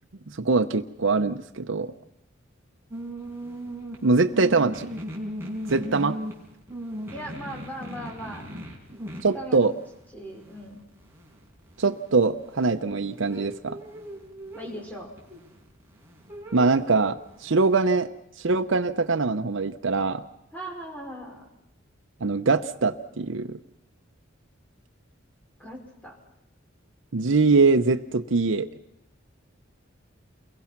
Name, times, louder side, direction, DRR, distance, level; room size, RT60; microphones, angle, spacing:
voice 1, 0.4-1.9 4.0-4.9 5.7-6.1 9.2-9.7 11.8-13.8 16.5-18.1 18.4-20.2 22.2-23.6 27.1-28.7, right 3 dB, 70° right, 6 dB, 0.8 m, -23 dB
sound 1, 2.9-17.8, equal, 10° right, 5.1 m, -39 dB
voice 2, 7.1-8.5 9.3-9.6 10.1-10.8 14.5-15.1 20.5-21.4 25.6-26.2, equal, 10° left, 0 dB, 5.3 m, -38 dB
28.5 x 22.5 x 5.9 m, 0.83 s
head